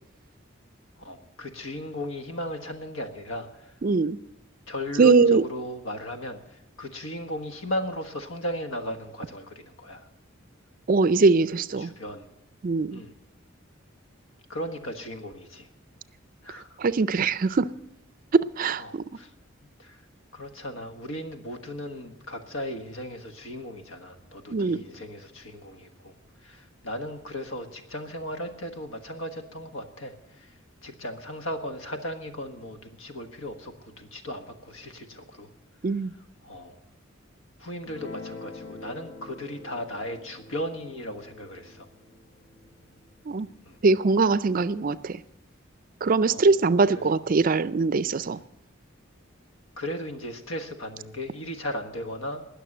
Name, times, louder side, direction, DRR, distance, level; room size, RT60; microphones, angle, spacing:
voice 1, 1.0-3.7 4.7-10.1 11.8-12.2 12.9-13.1 14.5-15.7 16.4-16.8 18.8-19.3 19.8-20.0 20.3-26.1 26.4-30.5 30.8-35.5 36.4-36.8 37.6-41.9 43.6-43.8 46.3-46.5 46.9-47.0 49.8-52.4, left 1 dB, 75° left, 7 dB, 1.5 m, -36 dB
voice 2, 3.8-4.2 5.0-5.4 10.9-11.9 12.6-13.0 16.8-17.7 18.3-19.0 24.5-24.8 35.8-36.1 43.3-43.5 43.8-45.2 46.0-48.4, right 4 dB, 45° right, 16 dB, 0.4 m, -22 dB
Guitar, 37.8-44.4, left 3 dB, 50° left, 0.9 m, -46 dB
19.5 x 6.8 x 7.8 m, 0.90 s
head